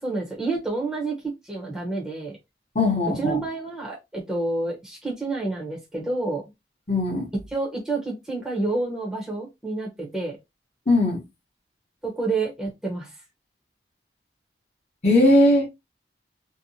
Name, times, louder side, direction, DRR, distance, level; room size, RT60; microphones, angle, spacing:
voice 1, 0.0-2.4 3.2-6.4 7.5-10.4 12.0-13.2, right 3 dB, 5° right, 0.7 m, -29 dB
voice 2, 2.7-3.4 6.9-7.3 10.9-11.2 15.0-15.7, left 1 dB, 40° left, 0.8 m, -19 dB
2.7 x 2.1 x 2.6 m
head